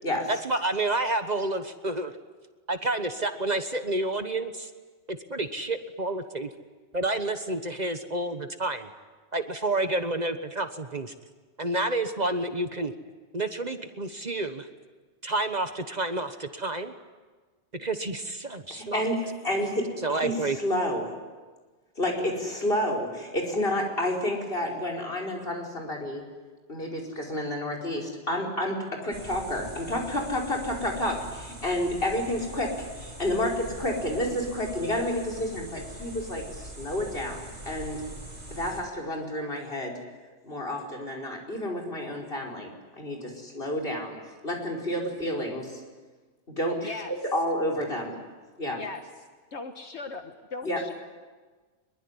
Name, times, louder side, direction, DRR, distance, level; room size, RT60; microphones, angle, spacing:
voice 1, 0.3-2.1 2.7-4.7 5.1-6.5 6.9-8.9 9.3-11.1 11.6-12.9 13.3-14.7 15.2-16.9 17.7-19.0 20.0-20.6, right 2 dB, 40° right, 8 dB, 1.4 m, -29 dB
voice 2, 18.7-21.2 22.0-26.2 26.7-38.0 38.5-40.0 40.4-44.2 44.4-45.8 46.5-48.2 48.6-48.8 50.6-50.8, left 1 dB, 55° left, 2 dB, 5.2 m, -30 dB
sound 1, 29.1-38.8, right 1 dB, 80° right, 6.5 m, -42 dB
voice 3, 46.8-47.1 48.8-49.0 49.5-50.9, left 3 dB, 75° left, 5 dB, 1.7 m, -38 dB
24.5 x 22.0 x 9.8 m, 1.4 s
omnidirectional pair, 1.2 m